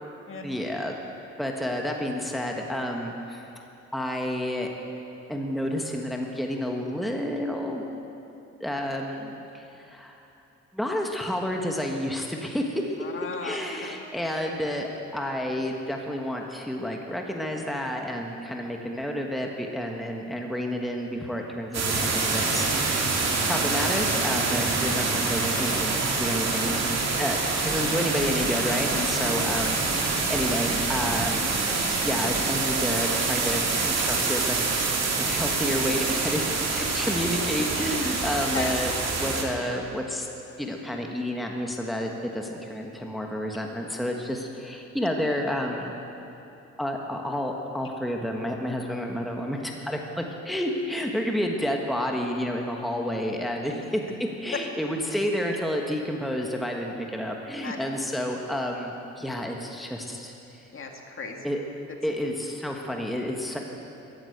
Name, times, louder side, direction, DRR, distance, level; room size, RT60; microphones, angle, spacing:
voice 1, 0.4-1.0 1.4-3.5 3.9-4.7 5.3-7.9 8.6-10.2 10.7-12.8 13.4-26.8 27.2-27.4 27.6-31.6 32.0-38.9 39.2-40.3 40.6-45.9 46.8-54.0 54.4-60.3 61.4-61.7 62.0-63.6, equal, ahead, 1 dB, 1.3 m, -30 dB
voice 2, 13.0-13.6 13.9-14.0 27.0-27.3 38.5-38.7 57.6-57.8 60.7-61.4, left 5 dB, 45° left, 2 dB, 2.0 m, -35 dB
sound 1, 21.7-39.4, right 4 dB, 60° right, 2.5 m, -26 dB
14.0 x 11.5 x 8.0 m, 2.9 s
cardioid pair, 90°, 30 cm